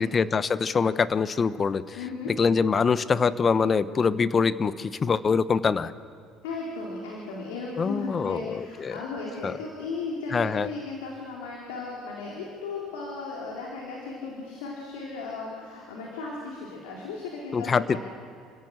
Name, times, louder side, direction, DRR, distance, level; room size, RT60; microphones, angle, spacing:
voice 1, 0.0-2.0 2.4-5.9 7.8-9.0 9.4-9.5 10.3-10.7 17.5-18.0, left 5 dB, 35° left, 15 dB, 0.9 m, -24 dB
voice 2, 2.0-2.3 6.4-18.0, left 3 dB, 85° left, -3 dB, 3.8 m, -36 dB
29.5 x 16.5 x 6.6 m, 2.3 s
hypercardioid pair, 75°, 0 cm